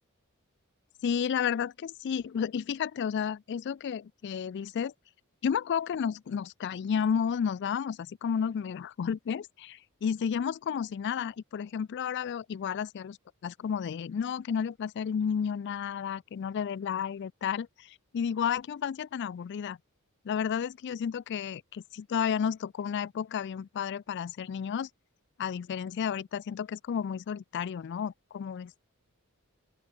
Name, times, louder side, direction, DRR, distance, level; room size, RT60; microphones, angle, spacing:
voice 1, 1.0-4.9 5.4-13.2 13.4-19.8 20.2-24.9 25.4-28.7, left 7 dB, 50° left, 0.3 m, -32 dB
open air
head